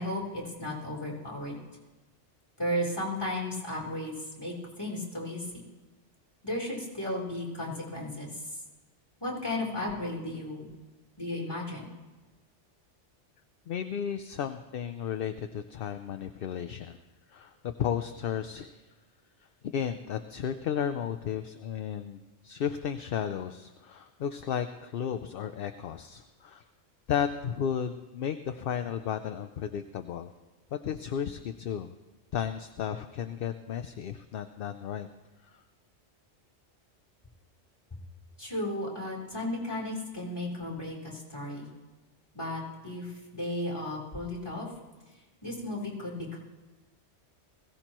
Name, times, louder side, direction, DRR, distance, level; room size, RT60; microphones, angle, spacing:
voice 1, 0.0-1.6 2.6-5.5 6.4-8.4 9.2-10.7 11.2-11.9 38.4-41.7 42.3-44.7 45.4-46.4, left 1 dB, 20° left, -6 dB, 3.8 m, -34 dB
voice 2, 13.7-17.0 17.3-18.8 19.7-26.6 27.1-30.3 30.7-31.9 32.3-35.1 35.4-35.6, left 8 dB, 60° left, 8 dB, 0.7 m, -34 dB
21.0 x 16.5 x 3.0 m, 1.2 s
omnidirectional pair, 1.2 m